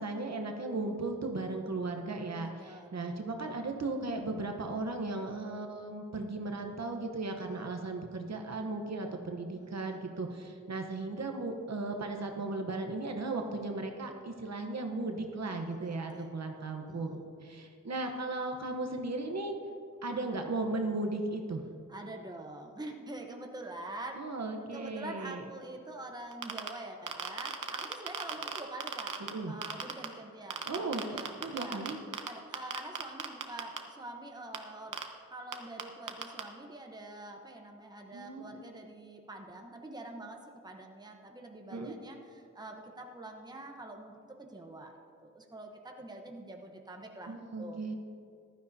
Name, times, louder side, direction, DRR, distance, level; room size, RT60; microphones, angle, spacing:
voice 1, 0.0-19.5 20.0-21.6 24.2-25.4 29.2-29.5 30.7-31.0 31.4-32.0 38.1-38.6 41.7-41.9 47.3-47.9, right 2 dB, 60° right, 4 dB, 1.0 m, -36 dB
voice 2, 2.4-3.0 7.4-7.7 9.5-10.0 15.3-16.3 16.9-17.3 21.9-24.2 24.7-29.2 29.5-31.8 32.2-35.0 35.3-44.9 45.2-47.8, right 2 dB, 15° right, 2 dB, 0.9 m, -46 dB
sound 1, 26.3-26.7 27.1-29.3 29.6-30.1 30.5-32.3 32.5-33.8 34.5-34.6 34.9-35.0 35.5-35.6 35.8-35.9 36.1-36.4, right 7 dB, 85° right, 0.9 m, -35 dB
15.0 x 12.5 x 2.7 m, 2.3 s
wide cardioid pair, 120°, 31 cm